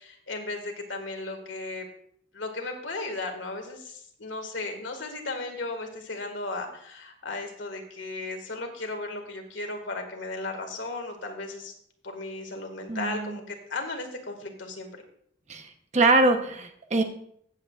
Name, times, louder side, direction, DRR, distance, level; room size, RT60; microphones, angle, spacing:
voice 1, 0.0-1.9 2.3-11.7 12.0-14.9, left 2 dB, 85° left, 4 dB, 1.9 m, -35 dB
voice 2, 12.9-13.4 15.5-15.7 15.9-17.0, right 2 dB, 40° right, 6 dB, 0.9 m, -23 dB
15.5 x 8.2 x 2.4 m, 0.66 s
head